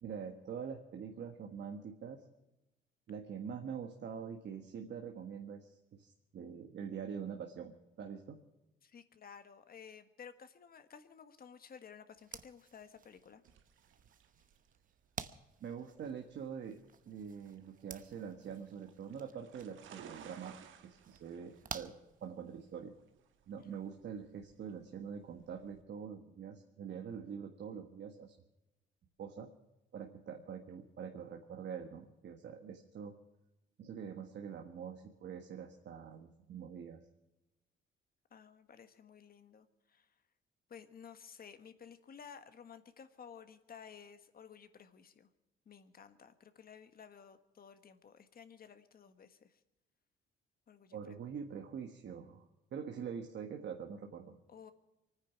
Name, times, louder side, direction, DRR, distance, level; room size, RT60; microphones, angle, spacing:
voice 1, 0.0-2.2 3.1-7.7 8.0-8.4 15.6-16.8 17.1-20.6 20.8-21.9 22.2-22.9 23.5-28.3 29.2-29.5 29.9-33.1 33.8-37.0 50.9-52.4 52.7-54.4, right 7 dB, 60° right, 4 dB, 1.6 m, -45 dB
voice 2, 8.8-13.4 23.6-23.9 38.3-40.1 40.7-45.3 45.6-49.6 50.7-51.3 54.5-54.7, left 7 dB, 50° left, 10 dB, 1.5 m, -55 dB
sound 1, 12.2-22.8, right 7 dB, 45° right, 1.0 m, -52 dB
sound 2, 13.4-25.8, right 8 dB, 80° right, 1.4 m, -59 dB
24.5 x 9.8 x 6.0 m, 0.97 s
cardioid pair, 90°, 20 cm